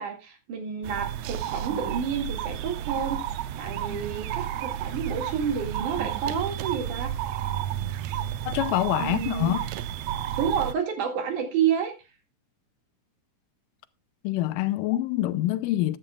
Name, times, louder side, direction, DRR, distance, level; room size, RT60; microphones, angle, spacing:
voice 1, 0.0-7.1 9.0-9.6 10.4-11.9, right 7 dB, 70° right, 3.5 m, -29 dB
sound 1, 0.8-10.7, right 11 dB, 85° right, 1.5 m, -32 dB
voice 2, 8.5-9.6 14.2-16.0, left 15 dB, 90° left, 2.3 m, -26 dB
13.5 x 10.5 x 2.4 m
omnidirectional pair, 3.8 m